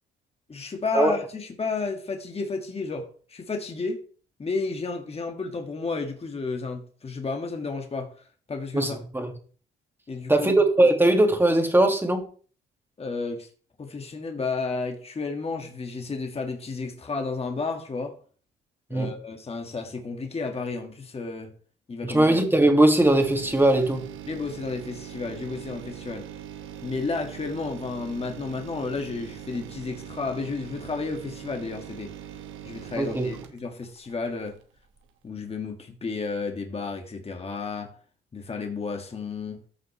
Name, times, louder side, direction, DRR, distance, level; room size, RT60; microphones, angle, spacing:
voice 1, 0.5-4.0 4.4-8.1 8.5-9.0 10.1-10.5 13.0-13.5 13.8-18.2 18.9-21.5 21.9-22.2 24.3-26.3 26.8-32.1 32.6-34.6 35.2-37.9 38.3-39.6, left 4 dB, 30° left, 1.9 m, -32 dB
voice 2, 8.7-9.3 10.3-12.2 18.9-19.1 22.0-24.1 32.9-33.3, right 1 dB, 10° right, 2.3 m, -20 dB
sound 1, 23.0-34.6 35.0-35.1, right 9 dB, 85° right, 1.4 m, -41 dB
14.5 x 6.1 x 3.3 m
cardioid pair, 90°, 20 cm